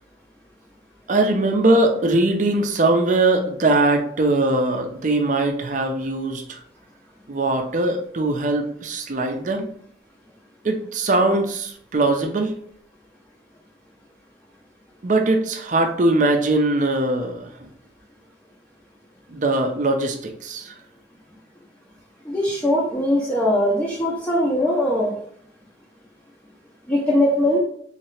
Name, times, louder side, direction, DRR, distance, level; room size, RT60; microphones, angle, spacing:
voice 1, 1.1-6.6 7.3-9.7 10.6-12.5 15.0-17.5 19.3-20.7, right 2 dB, 45° right, 4 dB, 0.5 m, -21 dB
voice 2, 22.3-25.1 26.9-27.6, left 1 dB, 10° left, -6 dB, 0.6 m, -20 dB
3.2 x 2.8 x 3.1 m, 0.64 s
head